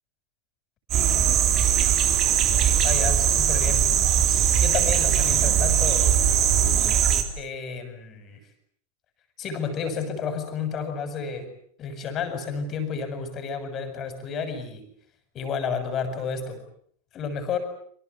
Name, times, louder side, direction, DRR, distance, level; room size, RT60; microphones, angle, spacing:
sound 1, 0.9-7.2, right 9 dB, 35° right, 3.9 m, -20 dB
voice 1, 2.8-3.9 4.6-6.1 7.4-8.4 9.4-11.5 11.8-14.8 15.3-16.6 17.1-17.6, left 6 dB, 30° left, 9 dB, 7.2 m, -31 dB
27.0 x 25.5 x 8.4 m, 0.63 s
figure-of-eight pair, 90°, 0 cm